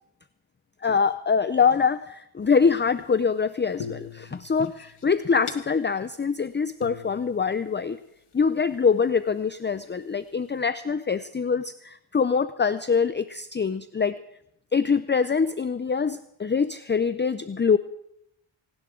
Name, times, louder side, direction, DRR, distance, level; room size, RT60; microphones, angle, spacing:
voice 1, 0.8-8.0 8.3-14.2 14.7-17.8, left 5 dB, 25° left, 13 dB, 0.4 m, -24 dB
sound 1, 2.4-3.3 3.8-6.0 6.4-6.5 6.8-8.3 9.0-9.1 9.8-10.3, left 6 dB, 80° left, 1.4 m, -42 dB
18.5 x 17.0 x 3.7 m, 0.77 s
wide cardioid pair, 80°, 50 cm